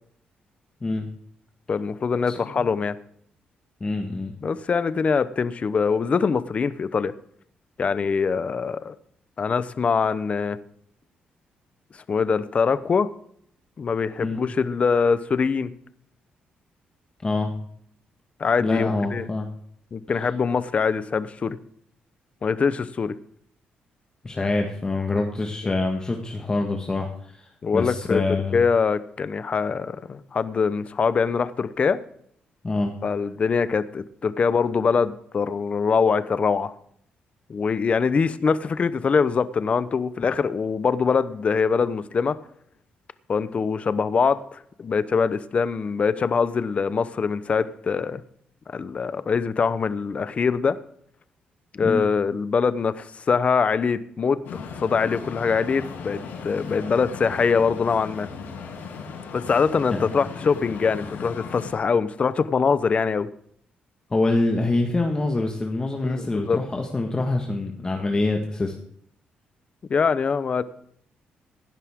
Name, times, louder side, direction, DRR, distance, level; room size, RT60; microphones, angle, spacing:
voice 1, 1.7-3.0 4.4-7.1 7.8-9.0 9.4-10.6 12.1-13.1 13.8-15.7 18.4-19.3 19.9-21.6 22.4-23.1 27.6-28.2 28.5-32.0 33.0-36.7 37.5-42.4 43.3-48.2 48.7-50.8 51.7-58.3 59.3-63.3 66.0-66.6 69.9-70.6, left 5 dB, 40° left, 14 dB, 0.8 m, -23 dB
voice 2, 3.8-4.3 14.2-14.4 17.2-17.5 18.6-19.5 24.2-28.6 32.6-32.9 51.8-52.0 59.9-60.1 64.1-68.7, left 2 dB, 25° left, 2 dB, 1.6 m, -25 dB
sound 1, 54.4-61.7, left 5 dB, 85° left, 6.3 m, -37 dB
16.5 x 11.0 x 3.7 m, 0.66 s
cardioid pair, 100°, 3 cm